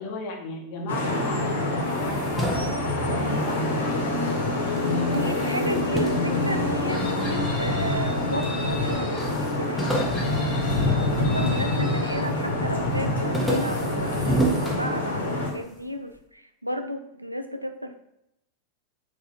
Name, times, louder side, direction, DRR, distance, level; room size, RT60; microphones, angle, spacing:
voice 1, 0.0-5.9 8.9-9.2, left 2 dB, 45° left, 1 dB, 0.9 m, -37 dB
Vehicle horn car horn honking / Traffic noise roadway noise, 0.9-15.5, left 2 dB, 75° left, 1.2 m, -26 dB
sound 1, 1.8-4.4 4.7-7.3 7.9-8.5 8.8-8.9 9.2-11.8 12.2-12.6 12.9-15.5, right 1 dB, ahead, 0.8 m, -31 dB
voice 2, 5.0-18.0, equal, 85° right, 7 dB, 0.3 m, -33 dB
Chicken rooster, 6.9-9.3 9.8-12.2, left 2 dB, 15° left, 1.4 m, -39 dB
3.9 x 2.5 x 4.1 m, 0.81 s
figure-of-eight pair, 90°, 0 cm